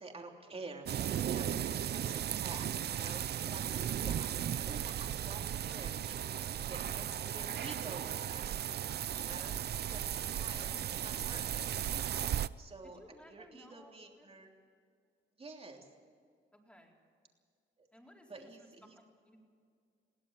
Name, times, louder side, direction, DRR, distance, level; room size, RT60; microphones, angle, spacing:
voice 1, 0.0-8.5 9.1-12.2 12.6-13.0 13.3-14.5 15.4-15.9 17.8-17.9 18.3-19.0, right 3 dB, 30° right, 2 dB, 3.2 m, -50 dB
sound 1, 0.9-12.5, right 10 dB, 60° right, 0.5 m, -36 dB
voice 2, 10.2-10.5 12.8-13.9 14.2-14.3 16.5-17.0 17.9-18.7 19.0-19.4, equal, 5° left, 0 dB, 4.1 m, -59 dB
22.0 x 17.0 x 7.5 m, 2.1 s
cardioid pair, 105°, 19 cm